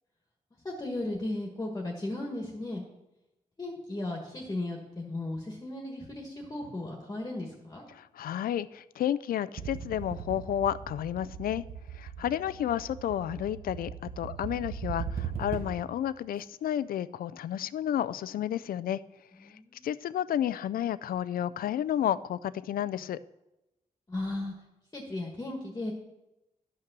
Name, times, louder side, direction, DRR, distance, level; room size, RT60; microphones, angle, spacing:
voice 1, 0.6-2.8 3.6-7.8 19.4-19.9 24.1-24.5 24.9-25.9, left 2 dB, 25° left, 1.4 m, -36 dB
voice 2, 7.9-11.6 11.9-13.9 14.2-19.0 19.8-23.2, left 10 dB, 85° left, 0.4 m, -31 dB
sound 1, 9.6-15.9, right 7 dB, 80° right, 1.0 m, -39 dB
11.5 x 5.8 x 6.0 m
wide cardioid pair, 130°, 15 cm